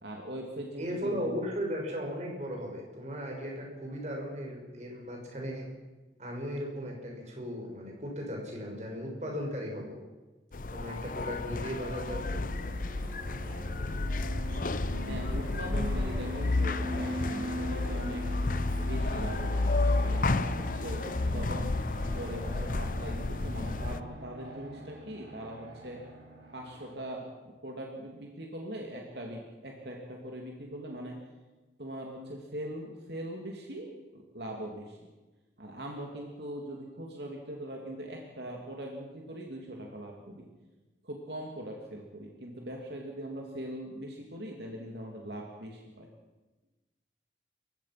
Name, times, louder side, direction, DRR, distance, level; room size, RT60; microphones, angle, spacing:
voice 1, 0.0-1.4 15.1-18.2 18.8-21.7 22.2-26.0 26.5-31.2 31.8-35.1 35.6-40.5 41.0-46.1, right 1 dB, 70° right, 0 dB, 2.9 m, -41 dB
voice 2, 0.8-5.7 6.2-10.0 10.7-12.5, equal, 40° right, 0 dB, 5.9 m, -36 dB
sound 1, 10.5-24.0, left 2 dB, 45° left, 0.7 m, -31 dB
Fixed-wing aircraft airplane, 11.8-27.0, equal, 85° right, 5.5 m, -42 dB
28.5 x 16.5 x 6.0 m, 1.2 s
head